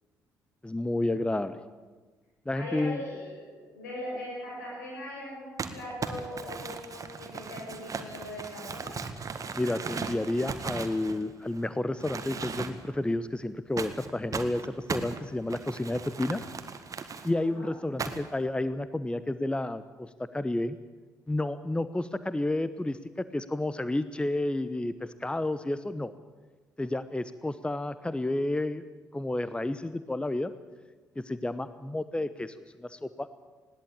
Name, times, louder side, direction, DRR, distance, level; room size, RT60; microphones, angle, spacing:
voice 1, 0.6-1.6 2.5-3.0 9.5-16.4 17.2-20.8 21.3-26.1 26.8-28.8 29.1-30.5 31.2-33.4, left 1 dB, 10° left, 14 dB, 1.0 m, -31 dB
voice 2, 2.5-3.4 3.7-8.9 17.4-17.7, left 1 dB, 80° left, -4 dB, 7.7 m, -40 dB
Crumpling crinkling, 5.6-11.6 12.0-13.0 13.8-17.3 18.0-18.4, right 5 dB, 40° right, 1.7 m, -37 dB
20.5 x 17.0 x 8.7 m, 1.3 s
figure-of-eight pair, 40°, 9 cm